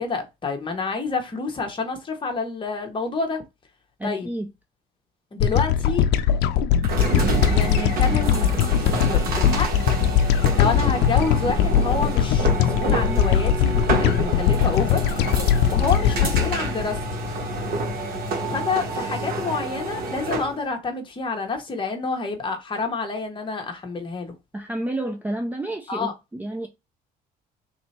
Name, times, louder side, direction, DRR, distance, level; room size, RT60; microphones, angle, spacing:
voice 1, 0.0-3.4 4.0-4.3 5.3-6.0 7.5-9.7 10.5-15.0 15.7-17.0 18.5-24.3 25.9-26.1, left 4 dB, 30° left, 1.2 m, -28 dB
voice 2, 4.0-4.5 24.5-26.7, right 1 dB, 10° right, 0.5 m, -30 dB
sound 1, 5.4-17.9, left 9 dB, 85° left, 0.5 m, -21 dB
sound 2, 6.8-20.6, right 3 dB, 65° right, 1.4 m, -28 dB
3.2 x 2.8 x 4.3 m
cardioid pair, 110°, 17 cm